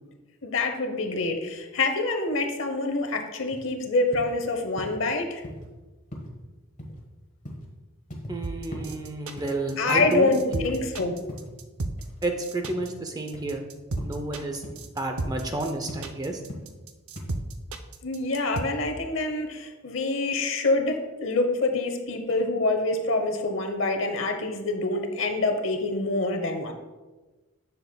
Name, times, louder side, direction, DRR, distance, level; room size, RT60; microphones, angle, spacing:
voice 1, 0.4-5.4 9.8-11.1 18.0-26.7, left 2 dB, 60° left, 6 dB, 0.9 m, -26 dB
sound 1, 3.5-3.6 4.1-4.3 4.8-5.0 5.4-5.6 6.1-6.3 6.8-7.0 7.4-7.7 8.1-8.4 8.7-8.9 9.4-10.2 10.6-10.9 11.3-11.6 12.0-12.2 12.6-12.9 13.3-13.5 14.0-14.2 14.6-14.8 15.2-15.5 15.9-16.1 16.5-16.7 17.1-17.3, equal, 35° left, 1.3 m, -39 dB
voice 2, 8.3-10.7 12.2-13.7 14.0-14.6 14.9-16.4, right 2 dB, 20° right, 4 dB, 0.5 m, -30 dB
sound 2, 8.4-18.6, right 2 dB, 75° right, 0.6 m, -33 dB
10.0 x 6.9 x 2.3 m, 1.2 s
head